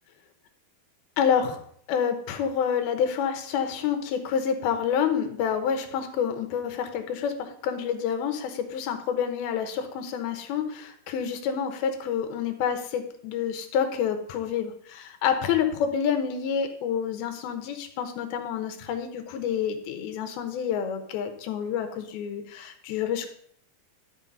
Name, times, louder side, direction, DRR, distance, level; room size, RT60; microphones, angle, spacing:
voice 1, 1.2-1.6 1.9-23.3, left 7 dB, 90° left, 7 dB, 2.9 m, -28 dB
11.5 x 5.0 x 5.3 m, 0.64 s
omnidirectional pair, 4.3 m